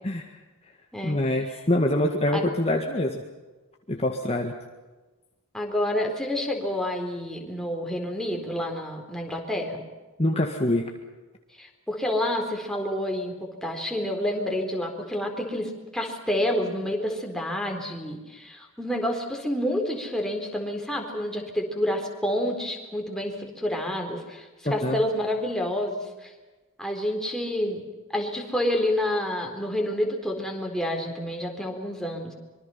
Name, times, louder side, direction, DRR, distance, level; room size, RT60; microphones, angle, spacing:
voice 1, 1.0-3.2 3.9-4.5 10.2-10.9 24.8-25.0, left 1 dB, 25° left, 2 dB, 1.9 m, -25 dB
voice 2, 5.5-9.8 11.6-26.3 26.8-27.9 28.1-32.3, left 1 dB, ahead, 1 dB, 4.1 m, -29 dB
25.5 x 24.0 x 5.8 m, 1.2 s
head